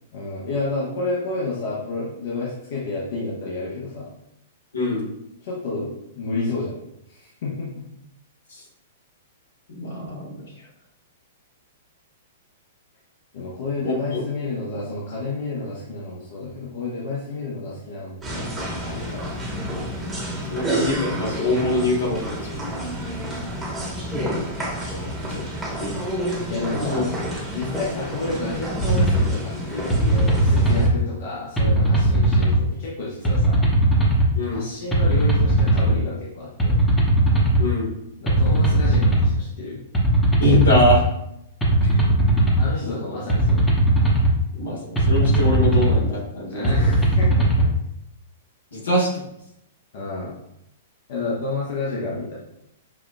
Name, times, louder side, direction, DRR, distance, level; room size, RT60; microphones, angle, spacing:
voice 1, 0.1-4.1 5.4-6.7 7.1-7.8 13.3-19.4 24.9-25.1 26.5-27.0 27.5-33.6 34.5-36.7 38.2-39.8 42.6-43.7 46.5-47.7 49.9-50.3 51.1-52.3, left 3 dB, 60° left, -6 dB, 0.9 m, -30 dB
voice 2, 4.7-5.1 8.5-8.6 9.7-10.4 13.8-14.2 20.5-22.6 25.3-25.4 25.8-26.0 26.9-27.0 34.3-34.6 37.6-37.9 40.4-41.0 42.8-43.0 44.5-44.8 45.0-46.9 48.7-49.3, left 1 dB, 85° left, -3 dB, 1.4 m, -23 dB
sound 1, 18.2-30.9, equal, 10° right, 1.1 m, -29 dB
sound 2, 28.8-29.2 29.9-30.9 31.6-32.6 33.2-34.3 34.9-35.9 36.6-37.6 38.3-39.3 39.9-41.0 41.6-42.6 43.3-44.3 45.0-46.0 46.6-47.7, right 2 dB, 15° left, 0.9 m, -18 dB
5.8 x 2.4 x 2.2 m, 0.80 s
hypercardioid pair, 120°, 0 cm